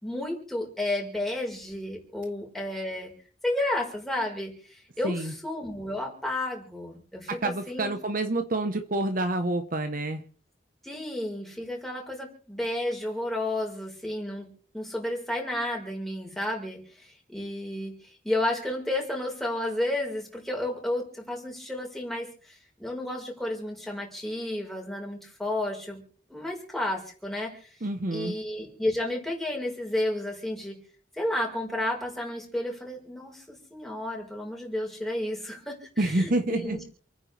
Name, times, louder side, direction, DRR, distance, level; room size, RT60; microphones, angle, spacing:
voice 1, 0.0-3.1 3.4-7.9 10.8-14.5 14.7-17.9 18.2-26.0 26.3-27.5 28.1-30.8 31.1-36.8, left 1 dB, ahead, -1 dB, 4.5 m, -32 dB
voice 2, 7.3-10.2 27.8-28.4 36.0-36.8, right 2 dB, 50° right, 7 dB, 1.0 m, -28 dB
29.0 x 9.9 x 3.3 m, 0.43 s
head